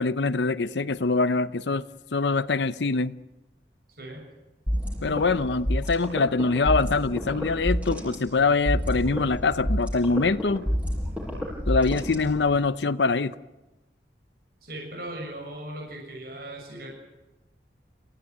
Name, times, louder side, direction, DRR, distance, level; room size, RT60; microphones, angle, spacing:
voice 1, 0.0-1.8 2.1-3.1 5.0-10.6 11.7-13.3, left 3 dB, 85° left, 0.7 m, -24 dB
sound 1, 4.7-12.6, equal, 10° right, 7.6 m, -29 dB
voice 2, 14.6-16.9, right 1 dB, 60° right, 7.0 m, -38 dB
27.5 x 16.5 x 9.4 m
head